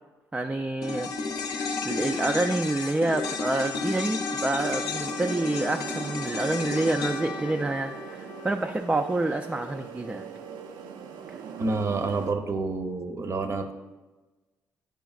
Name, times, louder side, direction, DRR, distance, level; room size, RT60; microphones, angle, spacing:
voice 1, 0.3-1.1 1.5-10.3 11.3-11.4, right 2 dB, 15° right, 5 dB, 0.3 m, -28 dB
sound 1, 0.8-9.3 9.6-9.7, left 4 dB, 60° left, 0.6 m, -33 dB
sound 2, 4.6-12.3, right 7 dB, 80° right, 0.5 m, -41 dB
voice 2, 11.6-13.7, right 3 dB, 45° right, 6 dB, 0.7 m, -28 dB
9.1 x 4.9 x 2.4 m, 1.2 s
supercardioid pair, 70°, 7 cm